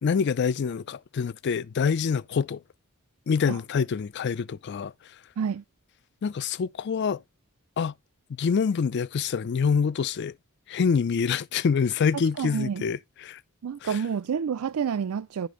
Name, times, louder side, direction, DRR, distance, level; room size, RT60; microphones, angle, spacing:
voice 1, 0.0-2.6 3.3-4.9 6.2-7.2 7.8-7.9 8.4-10.3 10.7-13.4 13.8-14.0, left 6 dB, 50° left, 0.4 m, -26 dB
voice 2, 12.4-12.8 13.6-15.5, right 7 dB, 90° right, 0.4 m, -29 dB
10.0 x 5.1 x 3.9 m
head